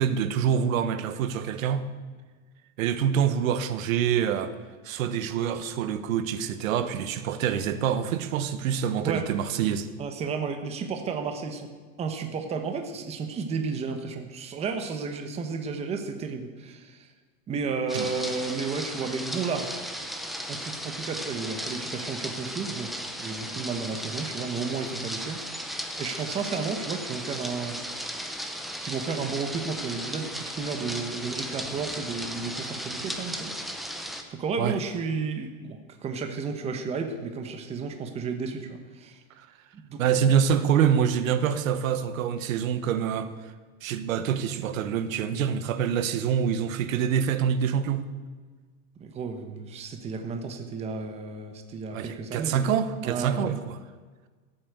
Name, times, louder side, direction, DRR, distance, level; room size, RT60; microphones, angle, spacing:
voice 1, 0.0-1.9 2.8-4.6 4.8-9.9 17.9-18.1 34.6-34.8 39.3-39.5 40.0-43.5 43.8-48.0 51.9-53.8, right 8 dB, 75° right, 12 dB, 1.3 m, -26 dB
voice 2, 10.0-11.7 12.0-17.1 17.5-19.7 20.5-22.9 23.2-25.4 26.0-27.8 28.8-33.5 34.3-39.2 39.7-40.2 49.0-52.7 53.0-53.6, right 5 dB, 15° right, 6 dB, 1.0 m, -32 dB
sound 1, 17.9-34.2, equal, ahead, 0.5 m, -36 dB
15.0 x 8.7 x 8.1 m, 1.4 s
supercardioid pair, 165°, 40 cm